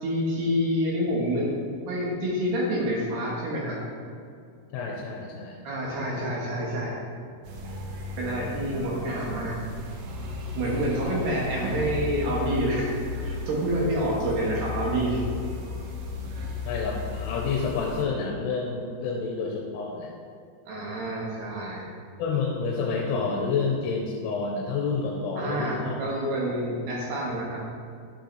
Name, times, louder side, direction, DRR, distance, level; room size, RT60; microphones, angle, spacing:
voice 1, 0.0-1.5 1.9-3.8 5.6-7.0 8.2-9.6 10.6-15.2 20.7-21.9 25.4-27.6, equal, 65° right, -4 dB, 2.9 m, -28 dB
voice 2, 4.7-5.6 16.6-20.1 22.2-26.0, left 4 dB, 85° left, -1 dB, 3.1 m, -29 dB
sound 1, 7.4-18.0, left 3 dB, 85° right, 3.5 m, -34 dB
11.5 x 6.5 x 3.2 m, 2.3 s
omnidirectional pair, 5.7 m